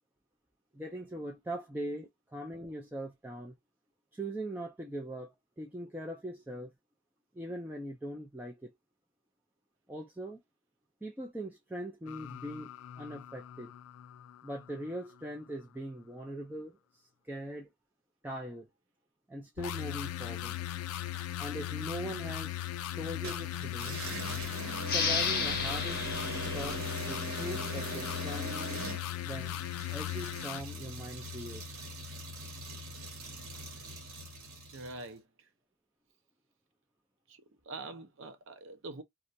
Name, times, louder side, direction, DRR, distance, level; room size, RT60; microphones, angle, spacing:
voice 1, 0.7-3.5 4.1-6.7 7.3-8.7 9.9-10.4 11.0-13.7 14.4-16.8 17.2-17.7 18.2-18.7 19.3-20.6 21.4-22.7 23.0-23.9 24.9-26.1 26.5-28.7 29.2-29.6 29.9-31.6, right 1 dB, 10° right, 0.4 m, -41 dB
sound 1, 12.1-14.9 19.6-30.6, left 13 dB, 80° left, 0.3 m, -38 dB
sound 2, 23.2-35.0, right 2 dB, 80° right, 1.0 m, -42 dB
sound 3, 24.8-28.1, left 5 dB, 45° left, 0.7 m, -34 dB
voice 2, 34.7-35.5 37.3-39.0, right 2 dB, 60° right, 0.6 m, -45 dB
2.4 x 2.1 x 2.6 m
head